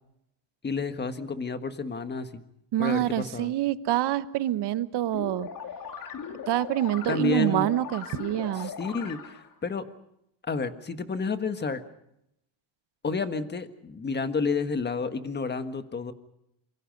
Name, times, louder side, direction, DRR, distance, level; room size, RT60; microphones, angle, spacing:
voice 1, 0.6-2.4 2.8-3.5 7.1-7.7 8.5-9.9 10.4-11.8 13.0-16.1, left 4 dB, 20° left, 10 dB, 1.5 m, -30 dB
voice 2, 2.7-5.5 6.5-8.7, right 13 dB, 55° right, 15 dB, 1.1 m, -26 dB
sound 1, 5.1-9.5, left 7 dB, 40° left, 2.8 m, -39 dB
27.0 x 23.5 x 5.3 m, 0.81 s
cardioid pair, 135°, 49 cm